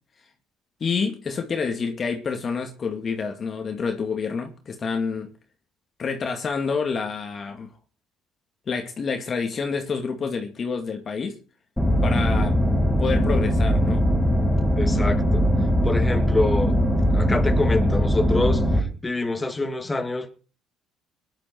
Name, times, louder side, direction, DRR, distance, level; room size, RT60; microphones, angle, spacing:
voice 1, 0.8-5.3 6.0-7.7 8.7-11.4 12.0-12.6 13.0-14.0, left 5 dB, 45° left, 2.3 m, -28 dB
sound 1, 11.8-18.8, equal, 5° left, 5.6 m, -20 dB
voice 2, 14.8-15.4 15.8-16.7 17.1-20.3, left 2 dB, 20° left, 2.8 m, -26 dB
21.0 x 10.5 x 4.7 m
hypercardioid pair, 65°, 0 cm